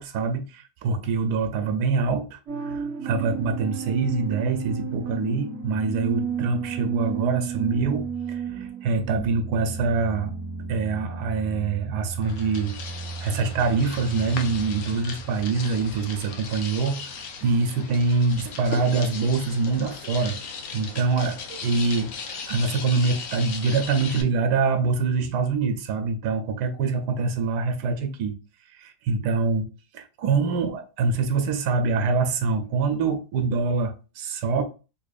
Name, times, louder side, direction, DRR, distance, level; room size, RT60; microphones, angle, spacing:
voice 1, 0.0-10.3 10.7-12.7 13.2-20.4 20.7-28.3 28.7-29.7 29.9-34.6, right 4 dB, 85° right, 1.2 m, -25 dB
sound 1, 2.5-16.3, right 5 dB, 45° right, 1.3 m, -33 dB
sound 2, 12.2-24.2, left 5 dB, 65° left, 0.9 m, -37 dB
4.1 x 2.7 x 2.4 m
omnidirectional pair, 1.7 m